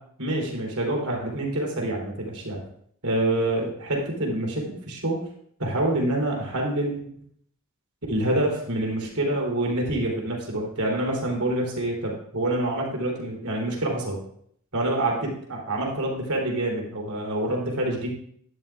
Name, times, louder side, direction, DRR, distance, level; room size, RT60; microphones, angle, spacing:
voice 1, 0.2-2.6 3.0-5.2 5.6-7.0 8.1-14.2 14.7-18.1, right 1 dB, 80° right, -1 dB, 3.4 m, -26 dB
12.0 x 12.0 x 2.5 m, 0.65 s
head